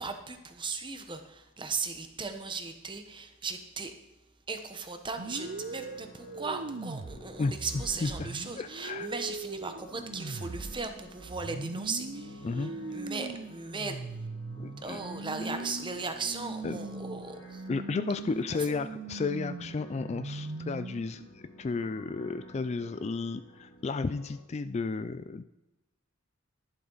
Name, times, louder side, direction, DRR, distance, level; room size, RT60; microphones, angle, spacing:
voice 1, 0.0-4.0 4.5-14.1 14.8-17.6 18.5-18.7, right 4 dB, 25° right, 7 dB, 1.1 m, -37 dB
sound 1, 5.2-24.4, left 1 dB, 60° left, 2.6 m, -51 dB
sound 2, 5.2-21.3, right 3 dB, 55° right, 0.6 m, -40 dB
voice 2, 8.6-9.1 12.4-12.7 14.6-15.0 15.4-15.6 16.6-16.8 17.7-25.4, left 4 dB, 30° left, 12 dB, 0.3 m, -33 dB
11.5 x 11.0 x 4.0 m, 1.0 s
head